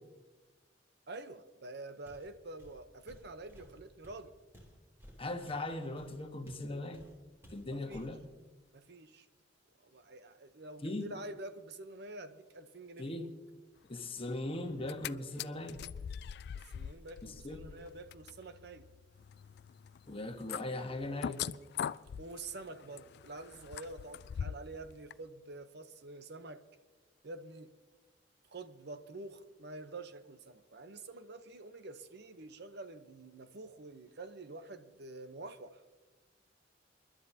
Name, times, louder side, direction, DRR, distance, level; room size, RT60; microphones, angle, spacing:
voice 1, 1.1-4.3 7.7-8.1 8.7-9.3 9.8-13.1 16.7-18.8 22.2-26.6 27.2-27.7 28.5-35.8, right 2 dB, 65° right, 10 dB, 0.8 m, -47 dB
Walk footsteps, 2.1-2.3 2.6-6.7 6.9-7.2 7.4-8.2, equal, 15° right, 2.8 m, -57 dB
voice 2, 5.2-7.0 7.5-8.2 10.8-11.1 13.0-13.3 13.9-15.8 17.2-17.6 20.1-21.4, left 2 dB, 30° left, 6 dB, 1.3 m, -39 dB
sound 1, 14.7-15.1 15.4-24.8 25.1-25.2, left 8 dB, 60° left, 0.3 m, -42 dB
28.5 x 11.5 x 2.8 m, 1.2 s
head